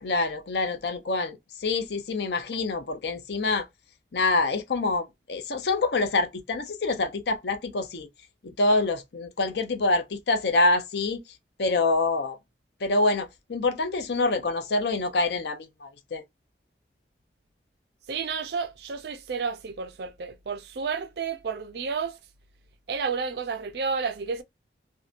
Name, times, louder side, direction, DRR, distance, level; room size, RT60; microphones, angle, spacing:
voice 1, 0.0-3.7 4.1-8.1 8.4-11.2 11.6-12.4 12.8-16.2, left 2 dB, 75° left, 0.6 m, -26 dB
voice 2, 18.1-22.2 22.9-24.4, right 5 dB, 70° right, 0.4 m, -31 dB
2.7 x 2.1 x 2.4 m
head